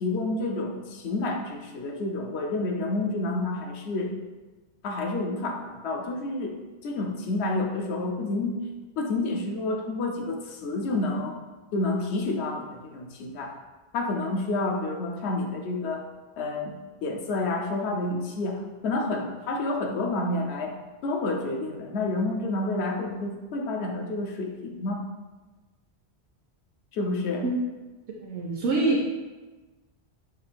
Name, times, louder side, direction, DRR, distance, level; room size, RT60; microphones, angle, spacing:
voice 1, 0.0-4.1 4.8-8.6 9.0-11.4 11.7-13.5 13.9-16.0 16.4-20.7 21.0-25.0 26.9-27.5, left 2 dB, 75° left, 2 dB, 0.9 m, -29 dB
voice 2, 28.2-29.0, right 2 dB, 75° right, -2 dB, 0.9 m, -25 dB
5.6 x 2.5 x 3.4 m, 1.2 s
omnidirectional pair, 1.1 m